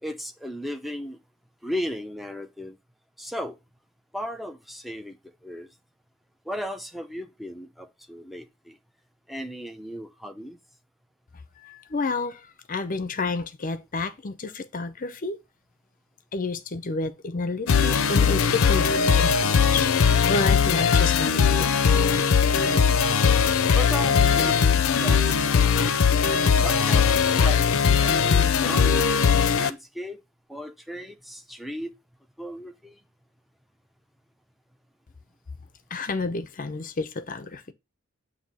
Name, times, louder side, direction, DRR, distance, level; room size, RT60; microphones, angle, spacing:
voice 1, 0.0-1.2 1.6-2.8 3.2-3.6 4.1-5.2 5.4-5.7 6.5-8.8 9.3-10.6 23.7-24.7 25.0-25.7 26.0-26.2 26.6-30.2 30.5-31.9 32.4-33.0, equal, ahead, 0.6 m, -36 dB
voice 2, 11.6-15.4 16.3-21.9 35.9-37.7, left 3 dB, 40° left, 0.6 m, -30 dB
sound 1, 17.7-29.7, left 6 dB, 80° left, 0.5 m, -20 dB
7.7 x 2.7 x 5.3 m
head